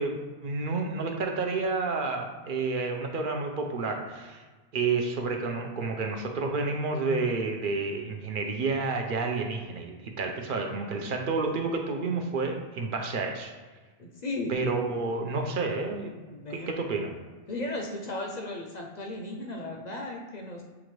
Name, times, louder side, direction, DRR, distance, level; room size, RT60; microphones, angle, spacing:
voice 1, 0.0-4.4 4.7-13.5 14.5-16.1 16.5-17.1, right 3 dB, 55° right, 3 dB, 0.7 m, -30 dB
voice 2, 10.5-11.1 14.0-14.6 16.3-16.7 17.5-20.6, left 2 dB, 50° left, 0 dB, 0.5 m, -36 dB
7.0 x 2.5 x 3.1 m, 1.3 s
omnidirectional pair, 1.1 m